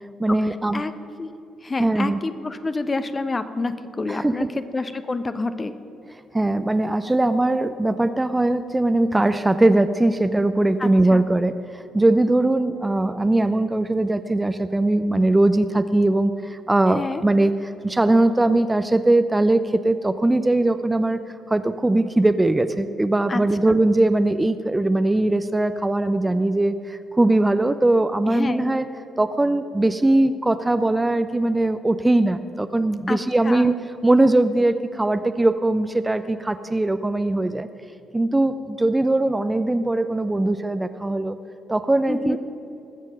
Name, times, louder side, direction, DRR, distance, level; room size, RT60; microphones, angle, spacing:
voice 1, 0.2-0.9 1.8-2.2 4.1-4.5 6.3-21.2 21.5-28.9 29.2-37.7 38.1-41.4 41.7-42.4, right 2 dB, 15° right, 11 dB, 0.6 m, -20 dB
voice 2, 1.6-5.7 10.8-11.2 16.9-17.2 23.3-23.4 23.7-23.8 28.3-28.7 33.1-33.2 33.4-33.7 42.1-42.4, left 3 dB, 30° left, 10 dB, 0.9 m, -28 dB
20.5 x 7.4 x 6.4 m, 2.8 s
figure-of-eight pair, 45°, 0 cm